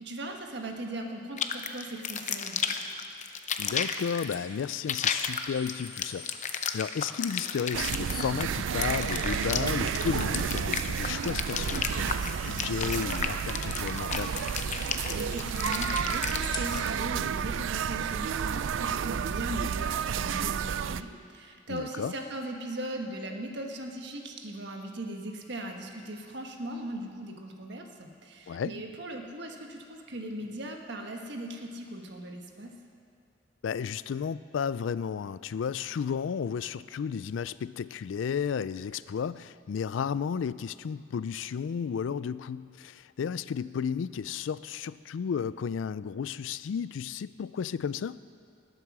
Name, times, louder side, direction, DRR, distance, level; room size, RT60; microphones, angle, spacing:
voice 1, 0.0-2.8 15.0-32.7, right 1 dB, 65° right, 2 dB, 1.5 m, -39 dB
sound 1, 1.4-16.9, left 7 dB, 40° left, 0.7 m, -33 dB
voice 2, 3.6-6.3 6.7-14.3 21.7-22.1 28.5-28.7 33.6-48.2, left 7 dB, 75° left, 17 dB, 0.3 m, -33 dB
sound 2, 4.3-17.1, left 4 dB, 25° left, 1.2 m, -49 dB
sound 3, 7.7-21.0, right 7 dB, 80° right, 0.4 m, -31 dB
19.5 x 8.0 x 6.1 m, 2.3 s
head